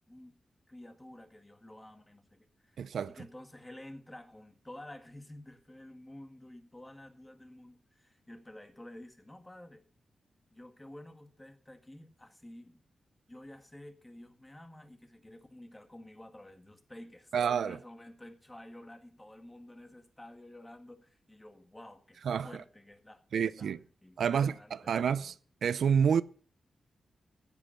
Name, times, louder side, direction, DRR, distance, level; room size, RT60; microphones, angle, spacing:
voice 1, 0.1-0.4 0.7-9.8 10.5-12.8 13.3-25.4, left 1 dB, 10° left, 1.8 m, -51 dB
voice 2, 2.8-3.1 17.3-17.8 22.3-22.5 23.3-23.8 24.2-24.5 24.9-25.3 25.6-26.2, right 7 dB, 90° right, 0.5 m, -28 dB
15.5 x 8.3 x 5.7 m
wide cardioid pair, 130°, 0 cm